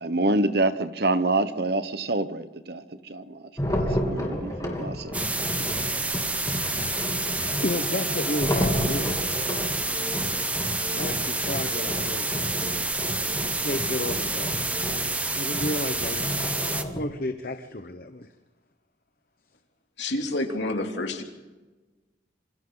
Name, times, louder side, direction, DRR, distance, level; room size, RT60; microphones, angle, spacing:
voice 1, 0.0-5.2, right 2 dB, 55° right, 11 dB, 1.2 m, -27 dB
sound 1, 3.6-17.0, equal, 20° left, 3.1 m, -32 dB
sound 2, 5.1-16.8, right 2 dB, 10° right, 0.9 m, -29 dB
voice 2, 5.5-9.2 11.0-12.9 13.6-14.6 15.3-18.3, left 1 dB, 50° left, 7 dB, 1.0 m, -33 dB
voice 3, 20.0-21.2, left 2 dB, 70° left, 3 dB, 3.0 m, -28 dB
27.5 x 26.5 x 4.0 m, 1.2 s
head